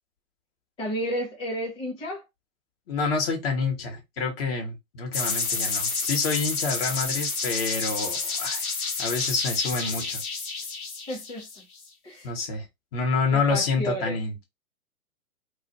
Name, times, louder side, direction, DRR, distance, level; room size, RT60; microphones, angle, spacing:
voice 1, 0.8-2.2 11.1-11.4 12.0-12.3 13.3-14.2, equal, 10° left, 0.9 m, -31 dB
voice 2, 2.9-8.7 9.0-10.2 12.2-12.6 12.9-14.3, left 4 dB, 45° left, 1.0 m, -28 dB
sound 1, 5.1-11.8, left 4 dB, 85° left, 1.1 m, -29 dB
2.4 x 2.2 x 3.8 m
hypercardioid pair, 135°, 42 cm